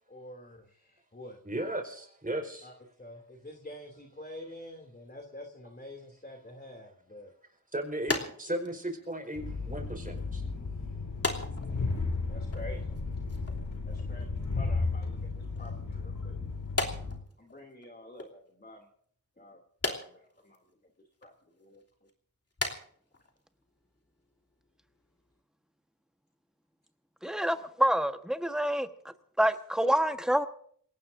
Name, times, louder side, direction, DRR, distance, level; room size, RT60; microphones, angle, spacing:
voice 1, 0.1-1.4 2.6-2.7 3.0-7.3 12.3-12.9 13.8-16.3 17.4-18.9 19.4-20.6 21.2-21.8, left 1 dB, 30° left, 2 dB, 2.9 m, -48 dB
voice 2, 1.4-2.7 7.7-10.4, right 1 dB, 25° right, 4 dB, 4.7 m, -36 dB
sound 1, 8.1-9.8 10.1-10.4 11.2-12.2 12.4-13.6 13.9-14.3 15.2-15.8 16.6-17.9 18.2-18.3 19.8-20.6 21.2-21.3 21.7-22.1 22.5-22.9 23.1-23.4 23.6-23.8 24.5-24.6 25.0-25.1 25.3-25.4, left 2 dB, 45° left, 3.1 m, -36 dB
Train, 9.4-17.2, left 3 dB, 80° left, 5.0 m, -34 dB
voice 3, 27.2-28.9 29.4-30.5, equal, ahead, 7 dB, 1.3 m, -27 dB
28.0 x 17.5 x 2.7 m, 0.63 s
wide cardioid pair, 60°, 33 cm